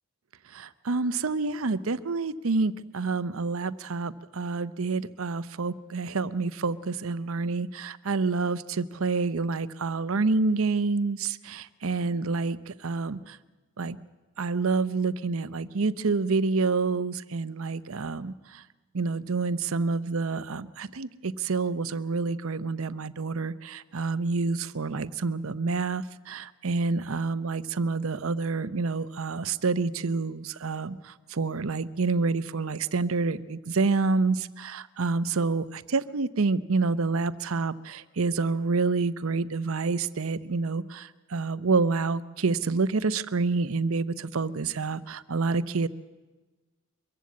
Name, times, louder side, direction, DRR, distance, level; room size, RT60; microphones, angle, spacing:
voice 1, 0.5-13.4 13.8-14.0 14.4-18.6 18.9-45.9, right 4 dB, 65° right, 15 dB, 0.7 m, -28 dB
23.0 x 15.0 x 8.5 m, 1.2 s
head